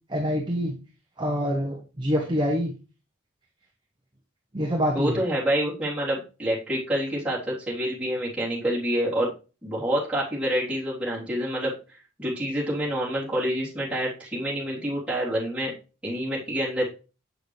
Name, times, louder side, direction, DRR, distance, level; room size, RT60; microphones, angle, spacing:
voice 1, 0.1-0.8 1.2-2.7 4.5-5.2, equal, 20° right, 1 dB, 0.9 m, -26 dB
voice 2, 4.9-9.3 9.6-11.7 12.2-15.7 16.0-16.8, equal, 5° right, -8 dB, 3.3 m, -27 dB
8.1 x 6.4 x 3.2 m, 0.32 s
head